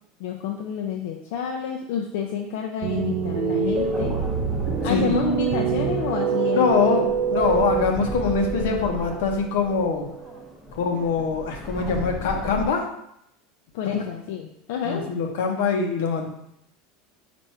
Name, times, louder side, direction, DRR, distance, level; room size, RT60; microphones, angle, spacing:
voice 1, 0.2-4.2 4.8-7.1 13.7-15.1, left 7 dB, 70° left, 1 dB, 0.4 m, -29 dB
sound 1, 2.8-10.3, right 7 dB, 55° right, 0.4 m, -26 dB
sound 2, 3.6-12.7, right 1 dB, ahead, 0.6 m, -35 dB
voice 2, 4.9-5.2 6.5-10.1 10.7-12.9 13.9-14.0 14.8-16.3, left 5 dB, 90° left, 3 dB, 0.8 m, -23 dB
4.2 x 2.6 x 4.5 m, 0.77 s
supercardioid pair, 155°, 0 cm